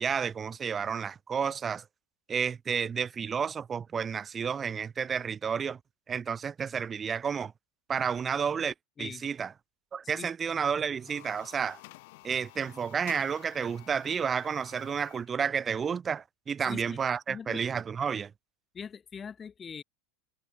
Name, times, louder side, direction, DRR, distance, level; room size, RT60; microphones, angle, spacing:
voice 1, 0.0-1.8 2.3-5.8 6.1-7.5 7.9-9.5 9.9-11.8 12.2-18.3, right 6 dB, 20° right, 0.3 m, -31 dB
voice 2, 10.0-10.6 16.6-17.0 17.3-17.6 18.7-19.8, left 6 dB, 20° left, 1.0 m, -42 dB
sound 1, 10.9-15.3, left 23 dB, 60° left, 1.6 m, -51 dB
supercardioid pair, 150°, 0 cm